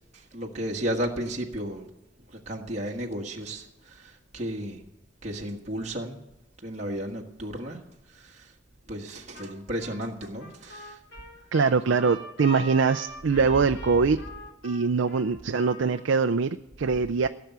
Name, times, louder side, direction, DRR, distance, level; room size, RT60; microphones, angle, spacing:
voice 1, 0.1-1.9 2.3-4.8 5.2-6.2 6.6-7.8 8.1-8.5 8.9-11.0 11.9-12.0, equal, 35° right, -1 dB, 1.6 m, -34 dB
Trumpet, 9.3-9.5 9.8-16.0, left 1 dB, 65° left, 2.9 m, -43 dB
voice 2, 11.5-14.2 14.6-17.3, right 5 dB, 85° right, 8 dB, 0.5 m, -23 dB
17.0 x 7.0 x 9.3 m, 0.96 s
head